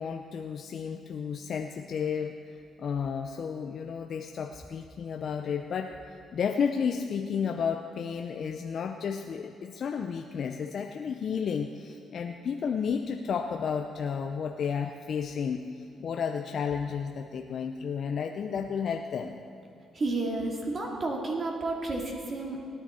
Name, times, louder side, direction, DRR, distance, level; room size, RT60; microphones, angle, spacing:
voice 1, 0.0-19.4, left 6 dB, 60° left, 4 dB, 0.6 m, -32 dB
voice 2, 19.9-22.7, right 2 dB, 40° right, 0 dB, 2.3 m, -31 dB
18.0 x 10.0 x 4.3 m, 2.6 s
cardioid pair, 90°, 0 cm